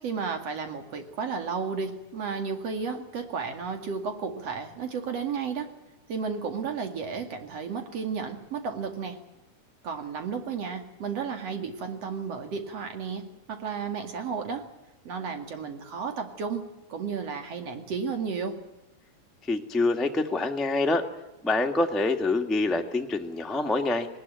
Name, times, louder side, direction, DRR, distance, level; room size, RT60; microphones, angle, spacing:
voice 1, 0.0-5.7 6.1-9.2 9.8-14.7 15.0-16.6 16.9-18.6, right 5 dB, 60° right, 6 dB, 3.2 m, -33 dB
voice 2, 19.5-21.0 21.4-24.1, left 2 dB, ahead, 3 dB, 1.0 m, -26 dB
19.5 x 19.5 x 9.2 m, 0.96 s
omnidirectional pair, 3.4 m